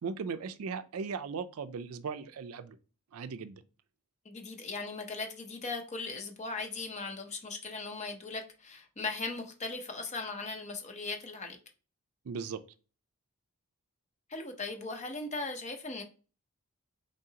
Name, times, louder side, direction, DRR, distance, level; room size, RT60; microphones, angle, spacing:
voice 1, 0.0-2.8 3.1-3.6 12.2-12.6, right 5 dB, 70° right, 0.4 m, -37 dB
voice 2, 4.2-11.6 14.3-16.0, left 3 dB, 30° left, 0.7 m, -38 dB
3.8 x 3.7 x 2.8 m
head